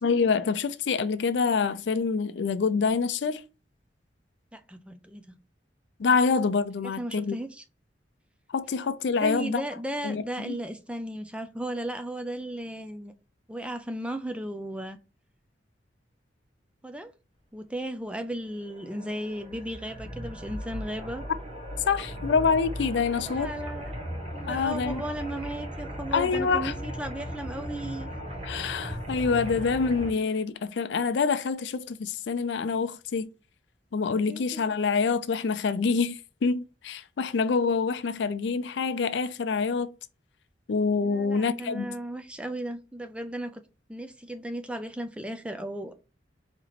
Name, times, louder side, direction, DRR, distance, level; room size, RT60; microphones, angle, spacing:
voice 1, 0.0-3.4 6.0-7.4 8.5-9.6 10.0-10.6 21.9-23.5 24.4-25.0 26.1-26.7 28.4-33.3 33.9-39.9 40.7-42.0, left 5 dB, 75° left, 0.4 m, -26 dB
voice 2, 4.5-5.4 7.0-7.6 9.2-13.1 13.5-15.0 16.8-17.1 17.5-21.2 23.3-24.0 24.3-28.1 34.3-34.6 41.0-43.6 43.9-45.9, right 1 dB, 5° right, 0.4 m, -35 dB
sound 1, 18.5-30.1, equal, 35° right, 1.2 m, -37 dB
4.4 x 2.9 x 4.1 m
head